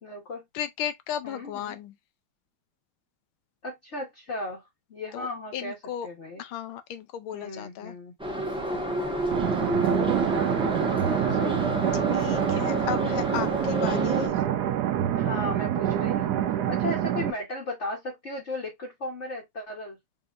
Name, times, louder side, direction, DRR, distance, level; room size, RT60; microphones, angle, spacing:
voice 1, 0.0-0.5 1.2-1.8 3.6-4.6 4.9-5.8 6.0-6.4 7.3-8.1 10.1-11.7 15.1-20.0, left 2 dB, 40° left, 1.3 m, -36 dB
voice 2, 0.5-1.9 5.1-6.1 6.4-8.0 11.9-14.4, left 10 dB, 80° left, 1.5 m, -35 dB
Subway metro underground, 8.2-14.3, right 1 dB, 5° right, 0.4 m, -29 dB
sound 1, 9.3-17.3, right 11 dB, 75° right, 1.0 m, -26 dB
5.6 x 2.8 x 2.5 m
omnidirectional pair, 2.3 m